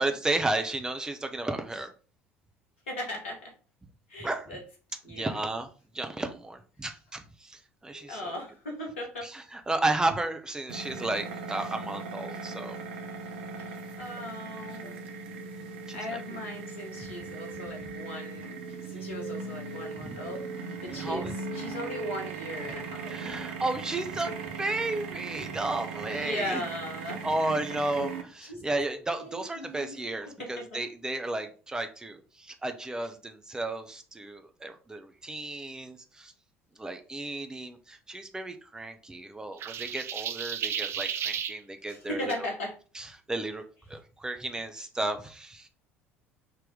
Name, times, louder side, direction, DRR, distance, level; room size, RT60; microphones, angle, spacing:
voice 1, 0.0-1.9 4.2-4.5 5.1-5.7 5.9-8.3 9.2-12.8 15.3-15.4 15.9-16.4 20.0-20.2 20.9-21.4 23.1-26.6 27.2-36.3 36.8-42.5 42.9-43.6 43.9-45.7, right 2 dB, 10° right, 6 dB, 0.7 m, -33 dB
voice 2, 2.9-3.5 4.1-4.6 5.0-5.4 7.9-9.3 13.6-13.7 14.0-15.1 15.9-18.5 18.8-23.1 26.1-27.3 28.5-28.6 29.1-30.8 41.9-42.7, left 1 dB, 75° left, 0 dB, 1.5 m, -38 dB
sound 1, 10.7-28.2, right 4 dB, 70° right, 0.7 m, -38 dB
sound 2, 39.6-41.6, right 9 dB, 40° right, 0.4 m, -33 dB
5.1 x 2.9 x 3.5 m, 0.38 s
figure-of-eight pair, 60°, 7 cm